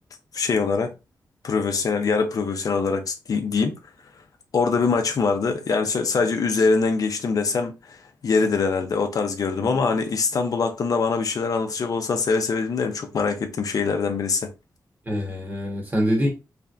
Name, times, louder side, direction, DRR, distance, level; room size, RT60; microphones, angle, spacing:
voice 1, 0.3-0.9 1.4-3.8 4.5-8.0 8.2-14.5, left 4 dB, 60° left, 0.6 m, -23 dB
voice 2, 9.5-10.0 15.0-16.3, equal, 25° right, 1.4 m, -25 dB
3.5 x 3.3 x 2.5 m
wide cardioid pair, 125°, 7 cm